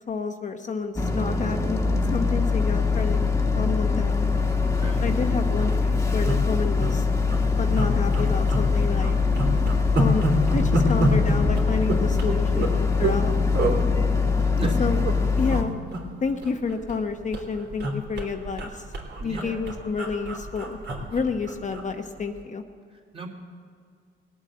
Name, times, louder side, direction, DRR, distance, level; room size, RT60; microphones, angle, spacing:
voice 1, 0.1-3.2 3.5-4.3 5.0-7.1 7.6-9.2 10.0-13.4 14.8-15.0 15.4-15.8 16.2-18.8 19.2-22.6, left 4 dB, 40° left, 5 dB, 1.0 m, -30 dB
Boat Water vehicle, 1.0-15.6, left 4 dB, 15° left, 1.4 m, -23 dB
voice 2, 4.7-5.0 14.6-14.9 19.2-19.6 22.9-23.3, right 2 dB, 30° right, 0 dB, 2.8 m, -34 dB
sound 1, 5.6-5.7 6.2-6.9 7.2-7.4 7.7-8.7 9.0-13.2 13.5-13.8 14.4-15.1 15.4-15.6 15.9-17.0 17.3-21.9 22.2-22.4, right 1 dB, 60° right, 3.3 m, -27 dB
19.5 x 8.7 x 7.7 m, 2.2 s
cardioid pair, 90°, 20 cm